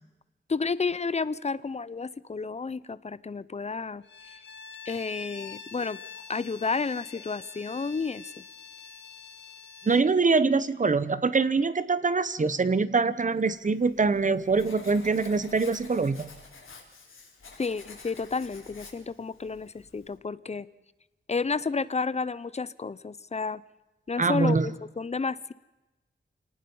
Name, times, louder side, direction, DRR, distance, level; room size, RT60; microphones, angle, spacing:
voice 1, 0.5-4.4 4.9-6.0 6.3-8.4 17.6-20.7 21.3-23.6 24.1-25.5, left 4 dB, 35° left, 18 dB, 0.6 m, -31 dB
Bowed string instrument, 4.0-10.1, left 6 dB, 60° left, 1.4 m, -46 dB
voice 2, 9.8-16.3 24.2-24.7, right 4 dB, 40° right, 15 dB, 1.0 m, -24 dB
Writing, 13.4-20.2, left 4 dB, 80° left, 4.4 m, -50 dB
27.5 x 19.0 x 5.5 m, 1.1 s
wide cardioid pair, 140°, 21 cm